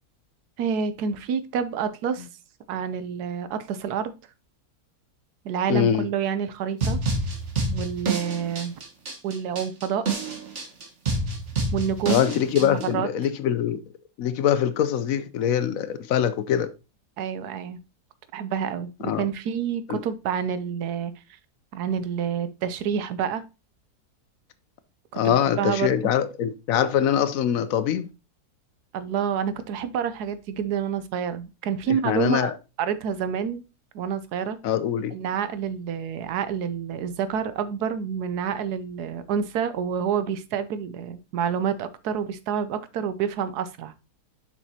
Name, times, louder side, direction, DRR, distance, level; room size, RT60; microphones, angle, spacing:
voice 1, 0.6-2.3 2.7-4.1 5.4-7.0 7.7-8.8 9.2-10.0 11.7-12.2 12.6-13.1 17.2-17.8 18.3-21.1 21.7-23.4 25.2-26.0 28.9-32.5 32.8-33.6 33.9-34.6 35.1-43.9, right 7 dB, 75° right, 1.2 m, -28 dB
voice 2, 5.7-6.1 12.1-13.8 14.2-16.7 19.0-19.3 19.9-20.0 25.1-28.1 32.0-32.6 34.6-35.1, left 9 dB, 70° left, 0.9 m, -23 dB
sound 1, 6.8-12.9, right 3 dB, 45° right, 1.5 m, -28 dB
6.9 x 6.1 x 2.8 m
omnidirectional pair, 1.7 m